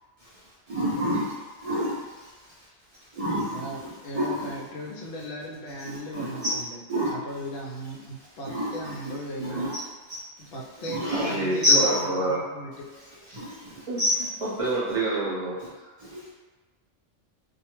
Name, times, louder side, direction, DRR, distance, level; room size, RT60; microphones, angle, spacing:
voice 1, 0.7-1.3 1.6-2.0 3.1-4.5 5.8-6.5 6.9-7.1 8.5-9.8 10.1-10.2 10.9-11.3 11.6-12.0 13.3-14.1 16.0-16.3, left 1 dB, 70° right, -8 dB, 0.3 m, -27 dB
voice 2, 3.5-6.8 7.1-9.7 10.4-12.9, equal, 65° left, -2 dB, 0.7 m, -38 dB
voice 3, 11.2-12.4 13.3-13.4 13.9-14.0 14.4-15.5, right 2 dB, 30° right, -9 dB, 0.8 m, -27 dB
2.3 x 2.1 x 3.0 m, 1.3 s
omnidirectional pair, 1.3 m